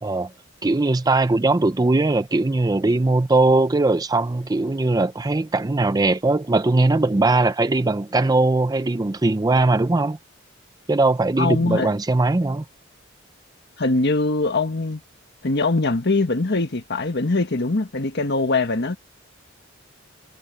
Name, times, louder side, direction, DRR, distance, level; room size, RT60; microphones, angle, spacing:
voice 1, 0.0-0.3 0.6-10.2 10.9-12.6, right 2 dB, 20° right, 0.4 m, -20 dB
voice 2, 11.4-11.9 13.8-15.0 15.4-19.0, left 3 dB, 55° left, 1.4 m, -22 dB
head